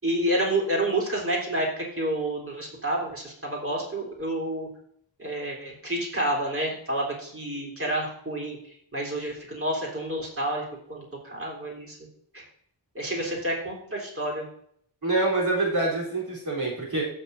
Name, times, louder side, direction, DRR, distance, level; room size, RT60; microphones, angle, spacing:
voice 1, 0.0-4.7 5.2-12.0 12.3-12.4 12.9-14.5, right 1 dB, 25° right, -4 dB, 3.8 m, -29 dB
voice 2, 15.0-17.0, right 2 dB, 50° right, -6 dB, 3.9 m, -26 dB
16.5 x 6.9 x 2.7 m, 0.66 s
wide cardioid pair, 115°, 47 cm